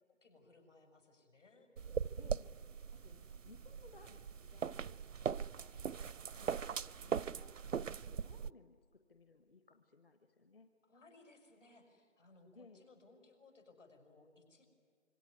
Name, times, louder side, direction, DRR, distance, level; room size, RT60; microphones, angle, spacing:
voice 1, 0.0-1.7 6.3-6.6 7.2-7.9 10.9-14.7, left 3 dB, 70° left, 4 dB, 6.6 m, -64 dB
sound 1, 1.8-8.5, right 7 dB, 80° right, 0.6 m, -40 dB
voice 2, 2.2-2.5 2.9-5.0 5.4-5.8 6.3-10.7 12.5-12.8, left 4 dB, 45° left, 7 dB, 1.2 m, -62 dB
26.0 x 23.5 x 9.5 m, 2.3 s
figure-of-eight pair, 155°, 38 cm